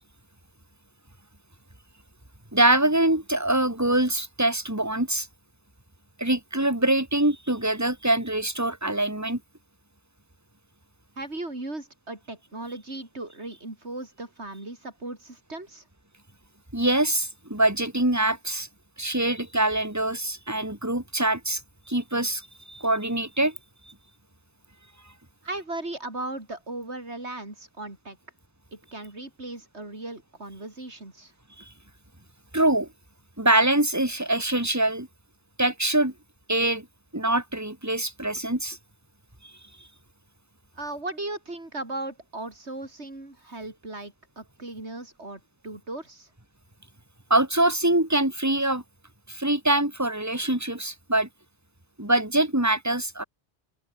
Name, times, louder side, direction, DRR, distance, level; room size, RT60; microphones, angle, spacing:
voice 1, 2.5-5.3 6.2-9.4 16.7-18.7 19.0-21.6 21.9-23.5 32.5-32.9 33.4-35.1 35.6-36.1 36.5-36.9 37.1-38.8 47.3-48.8 49.3-51.3 52.0-53.2, right 1 dB, 15° right, 3.8 m, -24 dB
voice 2, 11.2-15.8 25.4-28.2 28.7-31.3 40.8-46.3, right 2 dB, 85° right, 5.2 m, -37 dB
open air
omnidirectional pair, 1.1 m